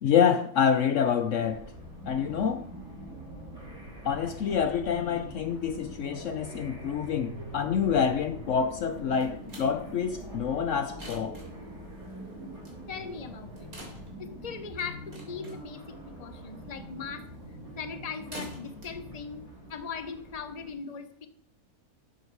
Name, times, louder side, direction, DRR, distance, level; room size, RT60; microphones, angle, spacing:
voice 1, 0.0-1.7 2.1-2.6 4.0-11.4, left 7 dB, 65° left, 0.9 m, -27 dB
sound 1, 1.5-20.7, equal, 25° right, 3.9 m, -44 dB
sound 2, 8.9-20.3, equal, 75° right, 3.8 m, -50 dB
voice 2, 12.9-13.7 14.2-21.3, left 5 dB, 30° left, 0.9 m, -40 dB
12.0 x 8.0 x 4.7 m
omnidirectional pair, 1.5 m